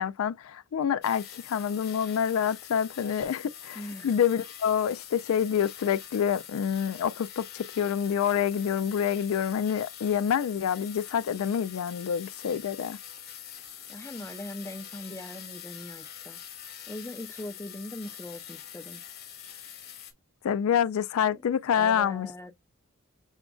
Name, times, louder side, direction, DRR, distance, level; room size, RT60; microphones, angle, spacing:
voice 1, 0.0-13.0 20.4-22.3, left 8 dB, 80° left, 0.3 m, -27 dB
sound 1, 1.0-20.1, left 9 dB, 50° left, 1.1 m, -45 dB
voice 2, 3.8-4.1 13.9-16.4 16.9-19.0 21.7-22.5, left 1 dB, 15° left, 0.5 m, -40 dB
6.9 x 2.4 x 2.2 m
head